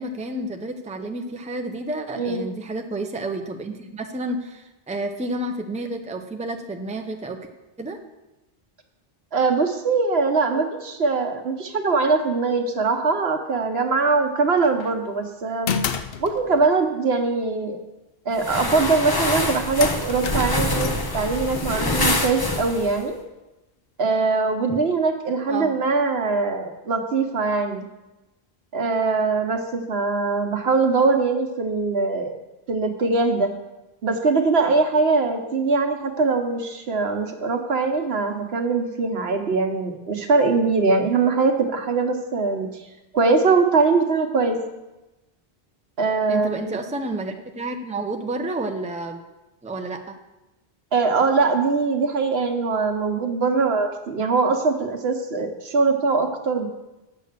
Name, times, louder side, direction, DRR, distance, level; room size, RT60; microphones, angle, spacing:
voice 1, 0.0-7.5 7.8-8.0 25.5-25.8 46.3-49.2 49.6-50.2, right 2 dB, 10° right, 5 dB, 0.5 m, -30 dB
voice 2, 9.3-15.8 16.2-17.8 18.3-23.2 24.0-27.8 28.7-32.3 32.7-33.5 34.0-42.8 43.1-44.6 46.0-46.8 50.9-56.7, right 4 dB, 80° right, 5 dB, 1.3 m, -22 dB
sound 1, 14.6-15.0 15.7-16.8 19.2-19.3 19.8-22.8, left 7 dB, 70° left, 0.8 m, -32 dB
sound 2, 18.4-23.0, left 1 dB, 25° left, 0.9 m, -25 dB
8.2 x 6.7 x 6.6 m, 1.0 s
omnidirectional pair, 1.0 m